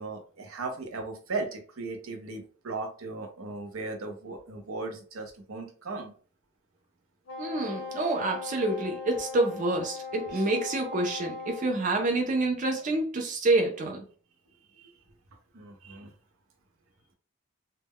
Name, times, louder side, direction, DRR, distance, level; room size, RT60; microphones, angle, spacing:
voice 1, 0.0-6.1 10.3-10.4 14.8-14.9 15.5-16.1, right 3 dB, 80° right, 5 dB, 0.6 m, -37 dB
Wind instrument woodwind instrument, 7.2-11.7, left 4 dB, 60° left, 0.6 m, -39 dB
voice 2, 7.4-14.0, right 2 dB, 35° right, 2 dB, 0.4 m, -27 dB
2.1 x 2.1 x 3.5 m, 0.40 s
head